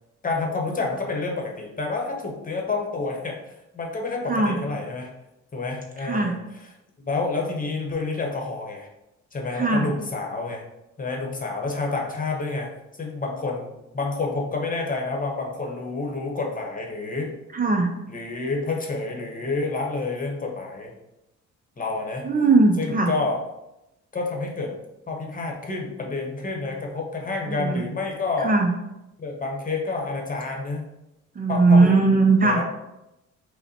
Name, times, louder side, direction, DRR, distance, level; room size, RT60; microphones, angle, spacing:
voice 1, 0.2-5.1 5.5-6.4 7.0-8.9 9.3-10.6 11.0-12.7 13.0-17.3 18.1-20.9 21.8-22.3 22.8-23.4 24.1-24.7 25.1-28.5 29.2-30.9 31.5-32.0 32.4-32.6, left 3 dB, 25° left, 0 dB, 1.0 m, -29 dB
voice 2, 4.3-4.6 6.0-6.3 9.5-9.9 17.5-17.9 22.2-23.1 27.5-27.8 28.4-28.7 31.4-32.6, right 3 dB, 30° right, 2 dB, 0.5 m, -19 dB
5.4 x 2.2 x 4.2 m, 0.91 s
cardioid pair, 90°, 30 cm